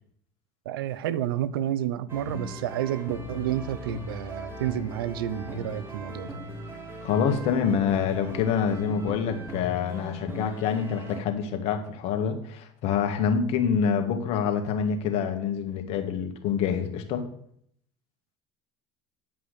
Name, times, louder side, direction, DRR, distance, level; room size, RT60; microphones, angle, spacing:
voice 1, 0.7-6.4, right 11 dB, 85° right, 16 dB, 0.7 m, -30 dB
sound 1, 2.1-11.2, equal, 20° right, 3.3 m, -39 dB
voice 2, 7.0-17.3, left 7 dB, 65° left, 5 dB, 1.9 m, -26 dB
9.9 x 5.6 x 6.8 m, 0.65 s
hypercardioid pair, 80°, 12 cm